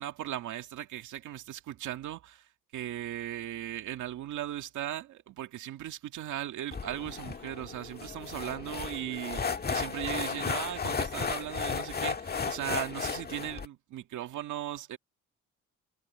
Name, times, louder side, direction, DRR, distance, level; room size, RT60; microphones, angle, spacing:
voice 1, 0.0-2.4 2.7-15.0, right 12 dB, 80° right, 2.2 m, -38 dB
sound 1, 6.7-13.7, left 5 dB, 30° left, 1.7 m, -34 dB
cardioid pair, 90°, 30 cm